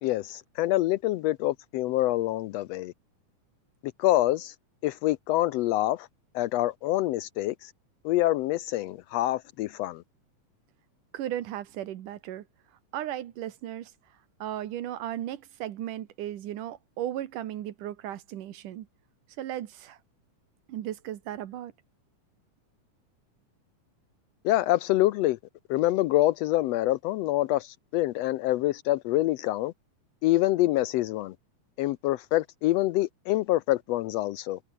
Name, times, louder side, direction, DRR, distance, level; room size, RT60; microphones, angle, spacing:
voice 1, 0.0-2.9 4.0-4.5 4.8-6.1 6.3-7.7 8.0-10.0 24.4-25.4 25.7-29.7 30.2-31.3 31.8-34.6, left 16 dB, 85° left, 1.4 m, -26 dB
voice 2, 11.1-12.4 12.9-13.9 14.4-18.9 19.4-20.0 20.7-21.7, right 12 dB, 85° right, 3.0 m, -35 dB
omnidirectional pair, 3.6 m